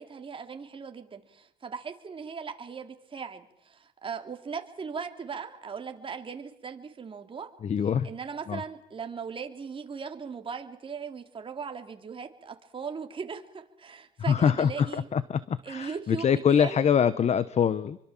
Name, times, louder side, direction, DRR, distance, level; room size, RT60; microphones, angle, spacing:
voice 1, 0.0-7.5 8.0-15.1 15.6-16.9, right 6 dB, 30° right, 5 dB, 3.3 m, -38 dB
voice 2, 7.6-8.1 8.5-8.6 14.3-18.0, left 7 dB, 40° left, 16 dB, 1.1 m, -24 dB
27.5 x 24.0 x 7.5 m, 0.76 s
cardioid pair, 110°, 17 cm